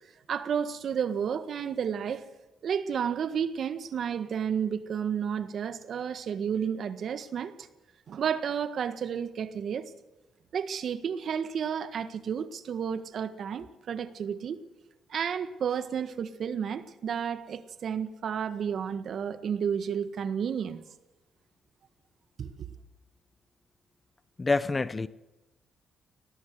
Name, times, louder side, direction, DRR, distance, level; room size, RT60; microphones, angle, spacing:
voice 1, 0.3-2.3 2.6-7.7 8.1-9.9 10.5-14.6 15.1-20.8 22.4-22.7, right 7 dB, 60° right, 1.6 m, -31 dB
voice 2, 24.4-25.1, left 3 dB, 25° left, 0.8 m, -27 dB
21.5 x 18.5 x 7.8 m
cardioid pair, 90°, 0 cm